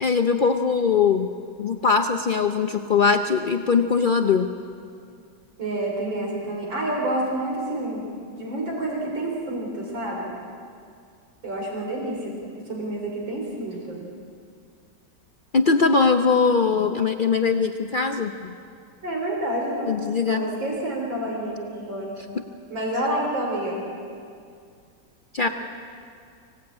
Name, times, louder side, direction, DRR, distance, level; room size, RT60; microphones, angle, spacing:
voice 1, 0.0-1.3 1.6-4.5 15.5-18.6 19.9-20.4 25.3-25.5, left 5 dB, 70° left, 6 dB, 0.4 m, -21 dB
voice 2, 5.6-10.3 11.4-14.1 19.0-20.0 20.3-22.2 22.7-23.8, right 1 dB, 90° right, -1 dB, 4.4 m, -29 dB
25.0 x 17.5 x 8.6 m, 2.3 s
omnidirectional pair, 2.0 m